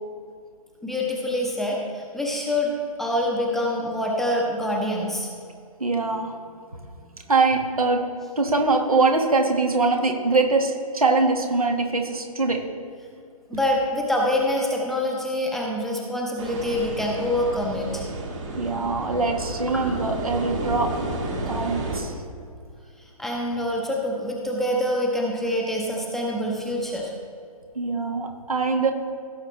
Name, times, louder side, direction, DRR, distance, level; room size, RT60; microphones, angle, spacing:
voice 1, 0.8-2.7 3.0-5.3 13.5-18.0 19.7-19.8 23.2-27.1, left 1 dB, ahead, -2 dB, 0.9 m, -25 dB
voice 2, 5.8-6.3 7.3-8.0 8.4-12.6 18.6-20.9 21.5-22.1 27.7-28.9, right 3 dB, 75° right, 3 dB, 1.5 m, -22 dB
sound 1, 16.4-22.0, right 2 dB, 55° right, 2.1 m, -31 dB
16.5 x 6.5 x 3.2 m, 2.4 s
figure-of-eight pair, 130°, 19 cm